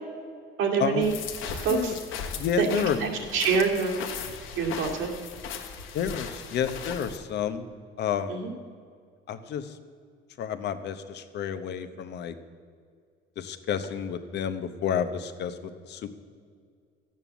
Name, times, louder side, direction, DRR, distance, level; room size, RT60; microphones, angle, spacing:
voice 1, 0.6-1.2 1.5-1.9 2.6-4.0 4.6-5.1 8.3-8.5, right 5 dB, 80° right, 0 dB, 2.3 m, -26 dB
sound 1, 1.0-7.2, left 7 dB, 80° left, 1.4 m, -37 dB
voice 2, 2.4-3.0 5.9-7.7 8.0-8.5 9.3-9.8 10.4-12.4 13.4-16.1, left 8 dB, 55° left, 10 dB, 0.9 m, -30 dB
13.0 x 8.9 x 7.1 m, 2.1 s
cardioid pair, 160°, 20 cm